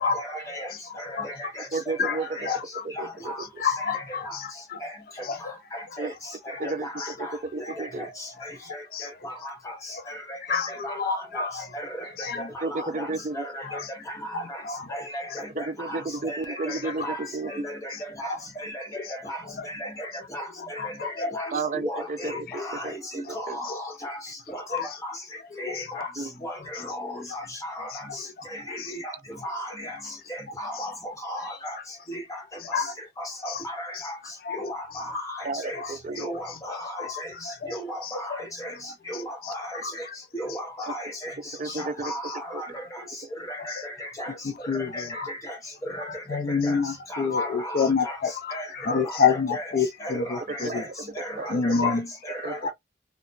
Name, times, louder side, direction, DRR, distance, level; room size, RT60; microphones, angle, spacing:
voice 1, 0.1-0.7 1.0-1.7 2.0-2.5 2.9-3.4 4.2-4.4 4.8-4.9 5.7-6.1 6.5-8.3 8.7-8.8 9.2-9.3 9.7-9.8 10.1-11.5 11.7-12.1 12.5-13.1 13.3-13.8 14.2-14.6 14.9-16.0 16.2-17.1 17.4-21.5 21.8-24.2 24.5-25.2 25.6-26.1 26.4-28.1 28.5-29.1 29.4-30.0 30.3-31.8 32.1-32.4 33.2-34.1 34.5-35.8 36.2-37.3 37.7-38.7 39.1-40.1 40.3-41.3 41.6-42.8 43.5-44.3 44.7-45.6 45.9-46.1 46.5-46.8 47.1-48.2 48.5-49.2 49.5-49.7 50.0-50.9 51.1-51.9 52.2-52.7, equal, 15° left, 0.9 m, -36 dB
voice 2, 1.7-2.5 2.8-3.6 6.0-6.1 6.6-6.9 7.2-8.1 12.6-13.4 15.5-17.5 21.5-23.6 26.2-26.3 35.4-36.3 40.9-41.0 41.6-42.1 42.5-42.6 50.5-50.9 51.4-51.9 52.4-52.6, right 3 dB, 40° right, 0.4 m, -32 dB
voice 3, 3.6-4.8 5.3-5.4 8.9-9.1 10.5-11.6 12.2-12.4 13.7-13.8 14.7-15.0 20.8-20.9 21.2-21.5 24.7-24.8 25.6-26.1 28.8-28.9 32.7-32.9 34.5-34.6 37.5-37.7 39.8-39.9 44.7-45.3 46.3-48.3 48.8-50.2 50.6-50.8 51.5-52.0 52.6-52.7, left 5 dB, 50° left, 0.3 m, -27 dB
2.8 x 2.0 x 2.4 m
head